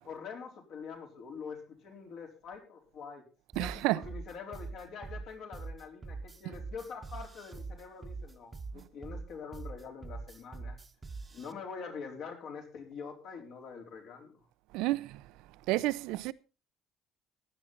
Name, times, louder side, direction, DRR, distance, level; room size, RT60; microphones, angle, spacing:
voice 1, 0.0-3.3 3.6-10.8 11.3-14.4, left 5 dB, 55° left, 4.1 m, -45 dB
sound 1, 3.5-11.5, right 3 dB, 15° right, 1.1 m, -43 dB
voice 2, 3.6-4.0 14.7-15.2 15.7-16.3, right 18 dB, 85° right, 0.6 m, -30 dB
16.0 x 11.0 x 4.0 m
cardioid pair, 155°, 0 cm